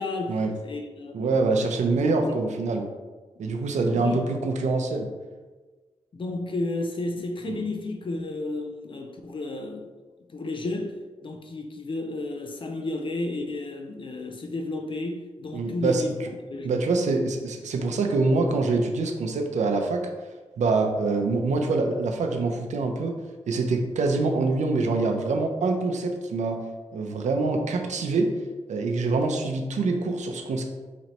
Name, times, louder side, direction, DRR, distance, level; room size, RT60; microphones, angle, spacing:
voice 1, 0.0-1.8 2.2-2.4 3.7-4.3 6.1-9.9 10.3-11.0 11.2-16.7, left 2 dB, 45° left, 0.4 m, -32 dB
voice 2, 1.1-2.9 3.4-5.1 7.4-7.6 15.5-16.0 16.6-20.0 20.6-23.1 23.5-26.6 26.9-28.3 28.7-30.6, right 3 dB, 90° right, 0.5 m, -25 dB
4.0 x 3.1 x 2.9 m
wide cardioid pair, 105°, 12 cm